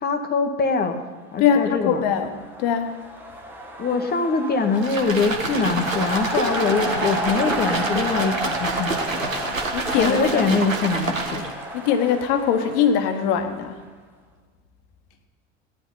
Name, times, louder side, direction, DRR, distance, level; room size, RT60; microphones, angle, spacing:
voice 1, 0.0-1.0 1.3-2.0 3.8-9.3 10.0-11.4, left 4 dB, 25° left, 6 dB, 1.3 m, -23 dB
voice 2, 1.4-3.0 9.4-10.5 11.7-13.8, left 8 dB, 50° left, 7 dB, 1.4 m, -22 dB
sound 1, 1.9-13.8, right 1 dB, 5° right, 1.4 m, -32 dB
sound 2, 4.8-11.6, right 3 dB, 85° right, 1.3 m, -28 dB
17.0 x 10.5 x 3.9 m, 1.4 s
figure-of-eight pair, 75°, 38 cm